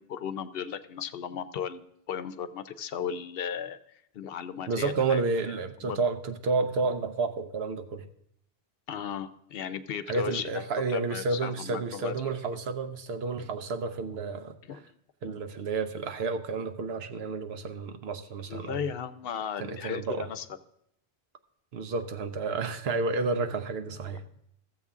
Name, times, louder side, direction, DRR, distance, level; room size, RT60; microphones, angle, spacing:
voice 1, 0.0-5.2 5.8-6.0 8.9-12.1 14.6-14.8 18.5-20.5, left 8 dB, 70° left, 12 dB, 0.8 m, -36 dB
voice 2, 4.7-8.0 10.1-14.6 15.2-18.8 19.6-20.3 21.7-24.2, right 4 dB, 85° right, 9 dB, 1.0 m, -30 dB
14.0 x 7.4 x 3.6 m, 0.75 s
omnidirectional pair, 1.0 m